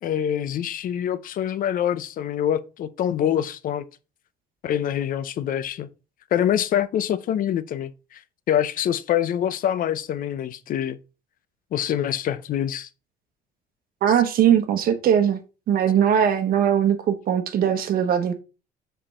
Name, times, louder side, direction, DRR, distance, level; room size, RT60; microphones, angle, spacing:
voice 1, 0.0-3.8 4.6-5.9 6.3-8.2 8.5-11.0 11.7-12.9 14.1-14.2, left 10 dB, 55° left, 0.6 m, -25 dB
voice 2, 14.0-15.4 15.7-18.3, right 9 dB, 60° right, 1.0 m, -20 dB
5.1 x 4.5 x 4.2 m
cardioid pair, 110°, 17 cm